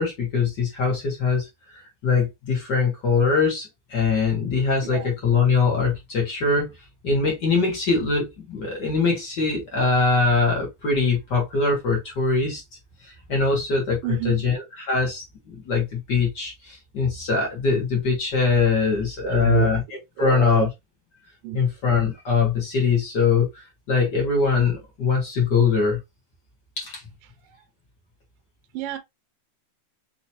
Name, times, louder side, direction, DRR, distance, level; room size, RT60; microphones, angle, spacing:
voice 1, 0.0-6.7 7.0-12.6 13.0-14.0 14.2-19.8 20.2-20.7 21.5-26.0 26.8-27.0, left 4 dB, 50° left, 1.3 m, -22 dB
voice 2, 14.0-14.5 19.2-19.7 20.2-20.7 21.4-21.6 28.7-29.0, right 12 dB, 80° right, 2.4 m, -27 dB
6.0 x 2.9 x 2.8 m
omnidirectional pair, 4.2 m